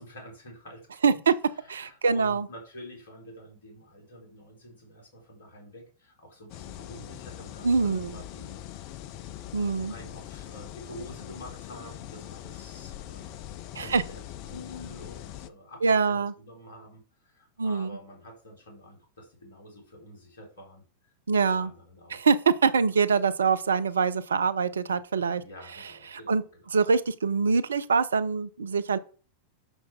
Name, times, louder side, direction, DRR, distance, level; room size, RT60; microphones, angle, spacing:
voice 1, 0.0-1.2 1.5-8.6 9.2-22.3 25.2-26.8, equal, 60° left, 3.9 m, -48 dB
voice 2, 1.0-1.3 1.7-2.5 7.6-8.1 9.5-9.9 13.7-14.0 15.8-16.3 17.6-17.9 21.3-21.7 22.1-25.4 26.1-26.4 26.7-29.0, right 5 dB, 70° right, 0.6 m, -24 dB
sound 1, 6.5-15.5, left 12 dB, 45° left, 0.7 m, -42 dB
10.0 x 6.3 x 3.7 m
figure-of-eight pair, 90°, 0 cm